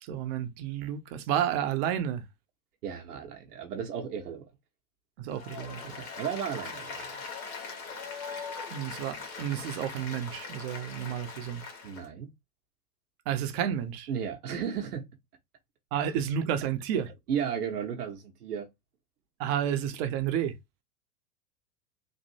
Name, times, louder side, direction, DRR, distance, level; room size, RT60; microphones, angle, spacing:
voice 1, 0.0-2.2 5.2-6.1 8.7-11.6 13.3-14.1 15.9-17.2 19.4-20.6, right 9 dB, 40° right, 0.7 m, -31 dB
voice 2, 2.8-4.4 5.9-7.2 11.8-12.3 14.1-15.1 17.3-18.7, right 8 dB, 75° right, 0.9 m, -34 dB
Applause, 5.3-12.1, left 5 dB, 65° left, 1.6 m, -41 dB
3.1 x 2.5 x 2.7 m
hypercardioid pair, 95°, 46 cm